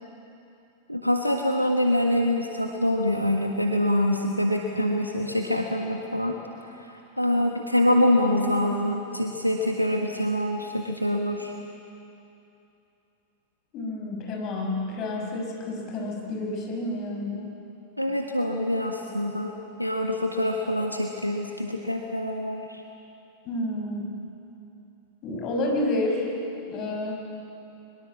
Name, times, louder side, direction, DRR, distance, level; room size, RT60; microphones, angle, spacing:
voice 1, 0.9-6.4 6.8-11.5 18.0-22.8, left 1 dB, 90° left, 2 dB, 1.4 m, -25 dB
voice 2, 13.7-17.5 23.4-24.1 25.2-26.3 26.7-27.2, left 2 dB, 35° left, 0 dB, 5.8 m, -30 dB
23.0 x 21.5 x 7.4 m, 2.8 s
figure-of-eight pair, 90°, 0 cm